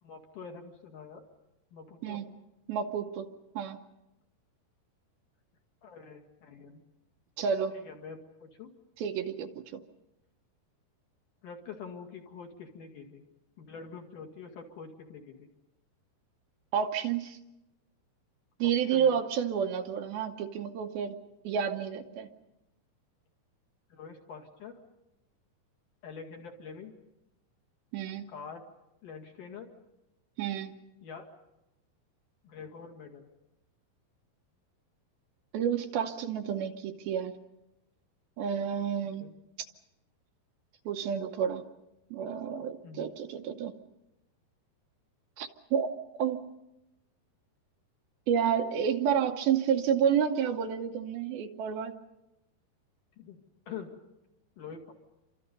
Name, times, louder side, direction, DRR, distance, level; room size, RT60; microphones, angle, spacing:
voice 1, 0.0-1.2 1.7-2.2 5.8-6.8 7.7-8.7 11.4-13.2 13.6-15.5 18.6-19.1 23.9-24.8 26.0-27.0 28.3-28.6 29.0-29.7 31.0-31.3 32.4-33.3 39.2-39.3 42.8-43.1 53.2-53.4 53.7-54.0 54.6-54.9, left 6 dB, 55° left, 2 dB, 3.4 m, -45 dB
voice 2, 2.7-3.3 3.6-3.8 7.4-7.7 9.0-9.8 16.7-17.4 18.6-21.2 21.4-22.3 27.9-28.3 30.4-30.7 35.5-37.3 38.4-39.3 40.9-41.6 42.1-43.7 45.4-46.4 48.3-52.0, right 8 dB, 70° right, 5 dB, 2.7 m, -30 dB
29.0 x 25.5 x 5.4 m, 0.94 s
omnidirectional pair, 4.8 m